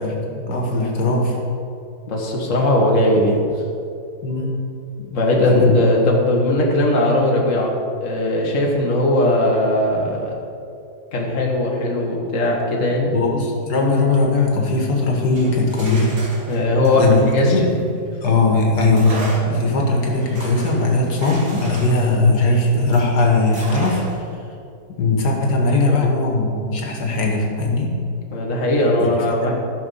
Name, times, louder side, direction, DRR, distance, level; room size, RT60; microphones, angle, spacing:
voice 1, 0.0-1.4 4.2-4.6 5.4-5.8 13.1-16.2 17.0-17.8 18.2-24.0 25.0-27.9 29.0-29.1 29.4-29.5, left 2 dB, 90° left, 0 dB, 2.1 m, -19 dB
voice 2, 2.1-3.4 5.1-10.3 11.1-13.1 16.5-17.6 25.7-26.1 28.3-29.5, left 1 dB, 50° left, -1 dB, 1.8 m, -19 dB
sound 1, 15.2-18.3 18.9-23.1 23.5-24.3, right 2 dB, 85° right, 2.6 m, -35 dB
14.5 x 6.0 x 5.5 m, 2.5 s
omnidirectional pair, 1.7 m